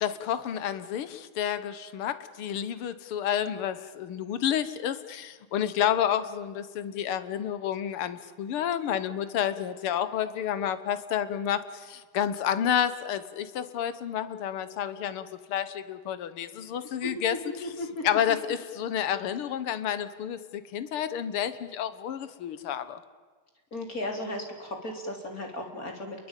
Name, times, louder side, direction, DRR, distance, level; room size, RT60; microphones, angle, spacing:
voice 1, 0.0-17.4 18.0-23.0, left 9 dB, 90° left, 13 dB, 2.0 m, -30 dB
voice 2, 16.8-18.4 23.7-26.3, left 1 dB, 40° left, 3 dB, 4.0 m, -36 dB
28.5 x 22.5 x 9.1 m, 1.4 s
omnidirectional pair, 2.3 m